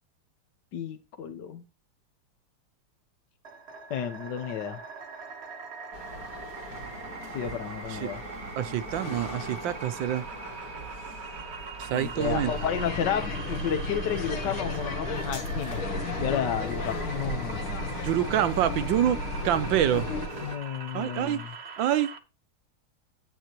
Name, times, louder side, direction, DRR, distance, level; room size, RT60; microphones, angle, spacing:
voice 1, 0.7-1.6 3.9-4.8 7.3-8.2 11.9-15.8 16.2-17.8 20.4-21.5, left 9 dB, 60° left, 1.4 m, -32 dB
sound 1, 3.4-22.2, right 5 dB, 40° right, 1.0 m, -42 dB
sound 2, 5.9-20.6, left 1 dB, 45° left, 2.4 m, -42 dB
voice 2, 8.6-10.2 11.8-12.5 18.0-19.2 19.4-20.1 20.9-21.4 21.8-22.1, right 11 dB, 75° right, 1.3 m, -26 dB
sound 3, 12.2-20.3, left 2 dB, 80° left, 2.1 m, -33 dB
9.3 x 9.2 x 3.0 m
omnidirectional pair, 2.3 m